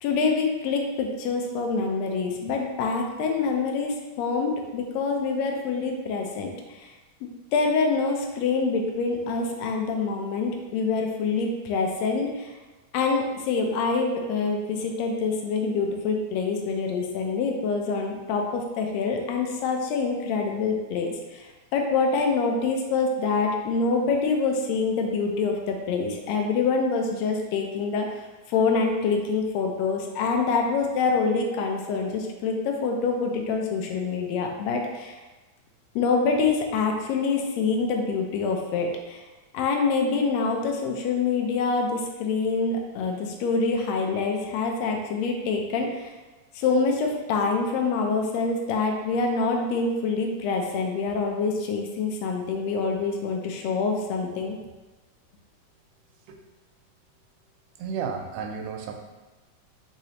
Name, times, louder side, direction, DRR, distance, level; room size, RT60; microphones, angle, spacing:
voice 1, 0.0-6.9 7.5-12.5 12.9-35.2 35.9-39.2 39.5-46.1 46.5-54.6, left 4 dB, 85° left, 2 dB, 1.5 m, -26 dB
voice 2, 57.8-58.9, right 6 dB, 85° right, 4 dB, 2.0 m, -32 dB
4.7 x 3.9 x 2.8 m, 1.2 s
omnidirectional pair, 3.6 m